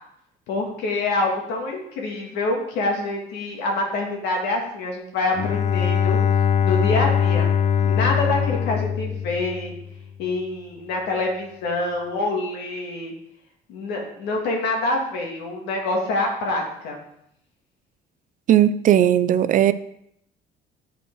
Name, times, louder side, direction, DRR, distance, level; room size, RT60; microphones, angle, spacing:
voice 1, 0.5-6.2 6.6-7.5 7.8-9.7 10.2-13.1 13.7-17.0, left 2 dB, 90° left, 1 dB, 2.0 m, -26 dB
Bowed string instrument, 5.3-10.0, left 7 dB, 40° left, 0.5 m, -22 dB
voice 2, 18.5-19.7, right 11 dB, 50° right, 15 dB, 0.4 m, -17 dB
7.7 x 5.5 x 4.6 m, 0.75 s
cardioid pair, 110°, 17 cm